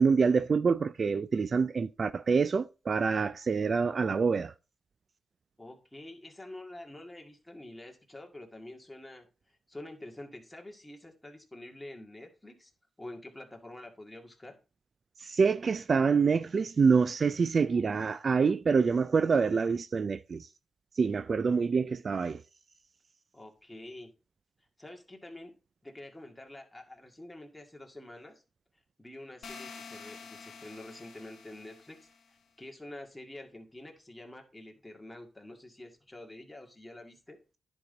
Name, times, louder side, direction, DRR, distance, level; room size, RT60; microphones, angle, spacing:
voice 1, 0.0-4.5 15.2-20.5 21.0-22.4, right 5 dB, 45° right, 0.3 m, -26 dB
voice 2, 5.6-9.3 9.7-12.7 13.0-14.6 23.3-24.1 24.8-25.5 25.8-28.4 29.0-32.1 32.6-37.4, left 1 dB, 10° left, 2.0 m, -47 dB
sound 1, 29.4-32.3, left 5 dB, 65° left, 1.2 m, -48 dB
10.5 x 5.3 x 3.9 m
cardioid pair, 85°, 0 cm